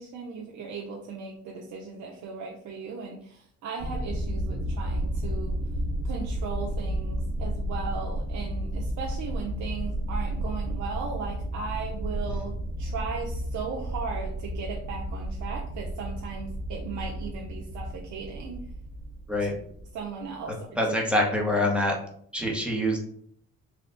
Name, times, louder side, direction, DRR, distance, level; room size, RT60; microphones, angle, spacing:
voice 1, 0.0-5.6 6.0-18.7 19.9-20.7 21.0-21.1 21.5-21.6, right 5 dB, 75° right, -1 dB, 0.7 m, -37 dB
sound 1, 3.8-20.2, right 1 dB, 35° right, 0.6 m, -32 dB
voice 2, 19.3-19.6 20.8-21.9 22.3-23.0, left 1 dB, 5° right, 0 dB, 1.0 m, -25 dB
3.4 x 2.3 x 3.8 m, 0.63 s
cardioid pair, 90°, 30 cm